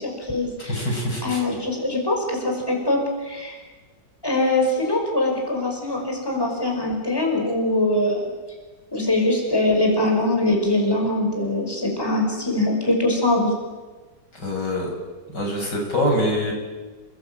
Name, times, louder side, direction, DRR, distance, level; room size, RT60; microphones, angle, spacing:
voice 1, 0.0-3.6 4.2-8.3 8.9-13.5, left 2 dB, 10° left, 0 dB, 5.5 m, -23 dB
voice 2, 0.7-1.4 14.3-14.9 15.3-16.5, left 1 dB, 65° left, 1 dB, 6.2 m, -24 dB
28.5 x 20.0 x 8.8 m, 1.3 s
omnidirectional pair, 2.0 m